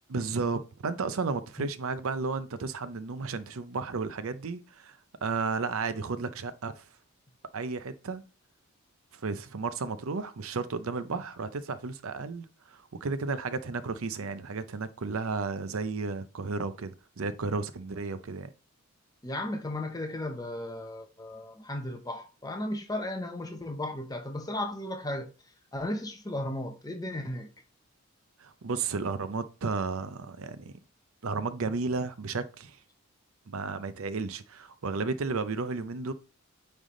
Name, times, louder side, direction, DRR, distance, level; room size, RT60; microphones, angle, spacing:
voice 1, 0.1-6.8 7.5-8.2 9.1-18.5 28.4-30.7 31.2-32.8 33.5-36.1, right 4 dB, 70° right, 0.6 m, -33 dB
voice 2, 19.2-25.3 25.7-27.5, left 1 dB, 15° left, 0.8 m, -35 dB
9.0 x 3.4 x 3.8 m
head